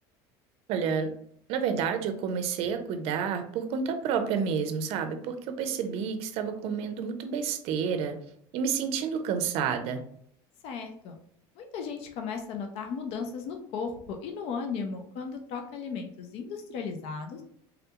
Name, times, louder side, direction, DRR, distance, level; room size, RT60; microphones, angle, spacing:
voice 1, 0.7-1.1 1.5-8.2 8.5-10.0, right 6 dB, 60° right, 7 dB, 0.5 m, -30 dB
voice 2, 10.6-11.2 11.6-17.4, left 5 dB, 60° left, 4 dB, 0.6 m, -36 dB
3.6 x 2.3 x 2.8 m, 0.67 s
cardioid pair, 130°, 11 cm